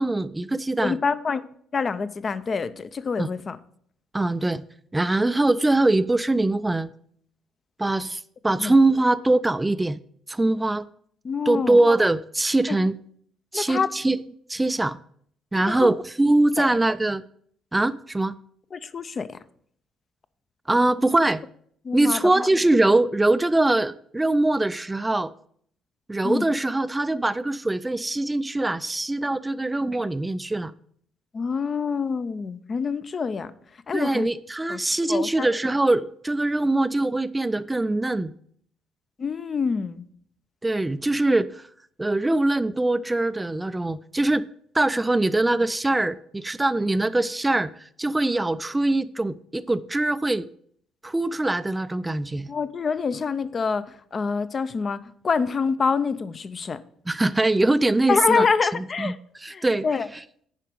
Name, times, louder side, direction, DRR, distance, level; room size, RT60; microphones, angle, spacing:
voice 1, 0.0-1.0 3.2-3.3 4.1-4.6 4.9-6.9 7.8-10.0 10.3-10.8 11.5-12.9 13.5-14.2 14.5-15.0 15.5-17.2 17.7-18.3 20.7-21.4 21.9-25.3 26.1-30.7 33.9-38.3 40.6-41.6 42.0-44.5 44.7-50.5 51.0-52.5 57.1-58.5 58.7-59.9, right 2 dB, 15° right, 0.4 m, -22 dB
voice 2, 0.8-1.4 1.7-3.6 8.6-8.7 11.2-11.8 12.7-12.8 13.5-13.9 15.5-15.9 16.6-16.7 18.7-19.4 21.8-22.2 26.2-26.4 31.3-33.5 33.9-34.3 34.7-34.8 35.1-35.5 39.2-40.0 52.5-56.8 58.1-59.2 59.5-60.1, left 5 dB, 40° left, 0.5 m, -26 dB
9.9 x 5.0 x 5.0 m
figure-of-eight pair, 45°, 0 cm